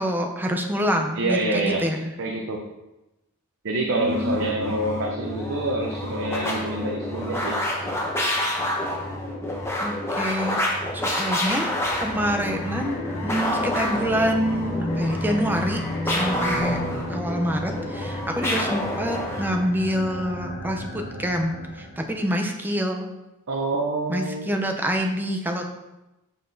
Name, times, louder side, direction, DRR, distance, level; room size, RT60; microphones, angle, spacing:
voice 1, 0.0-2.1 3.9-4.5 9.8-10.6 10.9-11.7 12.0-15.8 16.1-16.8 17.1-23.1 24.1-25.7, equal, 10° right, 2 dB, 0.6 m, -26 dB
voice 2, 1.1-1.9 2.2-2.7 3.6-7.6 23.5-24.5, right 2 dB, 60° right, 1 dB, 0.7 m, -26 dB
sound 1, 4.0-19.7, left 1 dB, 10° left, 1.0 m, -28 dB
sound 2, 11.6-22.2, equal, 55° left, 1.1 m, -33 dB
6.6 x 5.8 x 2.7 m, 0.97 s
head